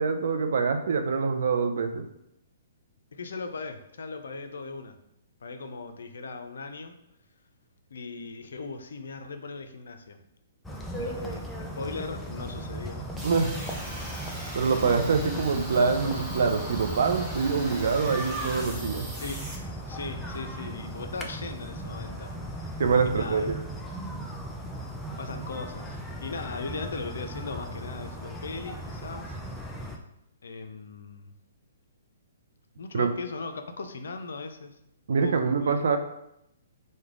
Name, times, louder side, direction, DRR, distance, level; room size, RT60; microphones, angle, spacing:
voice 1, 0.0-2.1 13.2-13.5 14.5-19.1 22.8-23.6 32.9-33.1 35.1-36.0, right 5 dB, 65° right, 7 dB, 0.4 m, -25 dB
voice 2, 3.1-5.0 5.4-6.9 7.9-10.2 11.0-13.1 19.2-19.4 19.9-23.5 25.2-29.4 30.4-31.3 32.8-34.8 35.2-35.8, left 4 dB, 75° left, 7 dB, 0.4 m, -38 dB
sound 1, 10.6-30.0, right 1 dB, 5° left, 0.4 m, -37 dB
sound 2, 13.2-19.5, equal, 25° right, 0.8 m, -40 dB
3.1 x 2.1 x 3.6 m, 0.80 s
hypercardioid pair, 130°, 0 cm